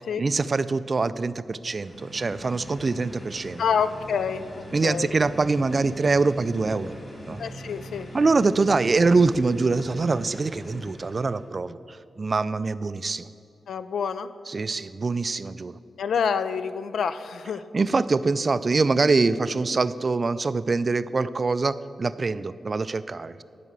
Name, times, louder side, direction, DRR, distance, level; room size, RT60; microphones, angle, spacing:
voice 1, 0.2-3.6 4.7-6.9 7.3-7.4 8.1-13.3 14.5-15.8 17.7-23.4, right 3 dB, 40° right, 15 dB, 0.3 m, -24 dB
sound 1, 1.5-11.5, equal, 30° left, 2.6 m, -42 dB
voice 2, 3.6-5.1 7.4-8.1 13.7-14.3 16.0-17.6, left 6 dB, 80° left, 12 dB, 0.4 m, -27 dB
11.0 x 4.9 x 7.4 m, 2.5 s
cardioid pair, 85°, 0 cm